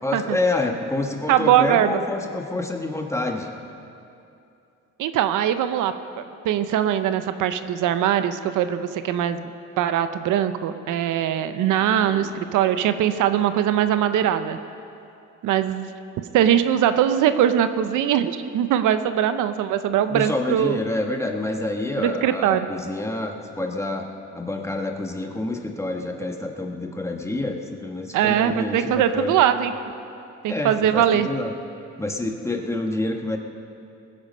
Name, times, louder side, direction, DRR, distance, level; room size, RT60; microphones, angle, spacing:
voice 1, 0.0-3.5 11.8-12.3 20.1-24.1 24.3-29.4 30.5-31.5 32.0-33.4, left 2 dB, 10° left, 2 dB, 1.4 m, -27 dB
voice 2, 1.3-2.0 5.0-9.4 9.8-14.6 15.4-15.9 16.3-20.8 22.0-22.7 28.1-29.7 30.4-31.3, right 10 dB, 85° right, 10 dB, 0.7 m, -21 dB
20.0 x 8.7 x 5.4 m, 2.6 s
cardioid pair, 90°, 30 cm